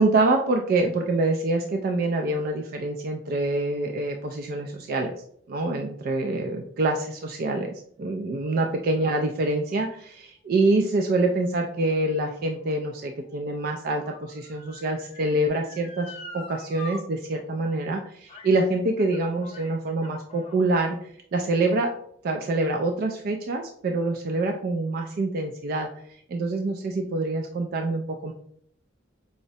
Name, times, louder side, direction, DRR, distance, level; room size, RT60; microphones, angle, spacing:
voice 1, 0.0-5.2 5.5-7.7 8.0-21.9 22.2-25.9 26.3-28.3, right 2 dB, 50° right, 2 dB, 0.3 m, -26 dB
Motor vehicle (road) / Siren, 11.8-17.0 17.4-17.5 18.3-18.6 19.0-20.6 21.4-21.5, left 3 dB, 30° left, 0.5 m, -45 dB
4.9 x 2.0 x 2.6 m, 0.66 s
head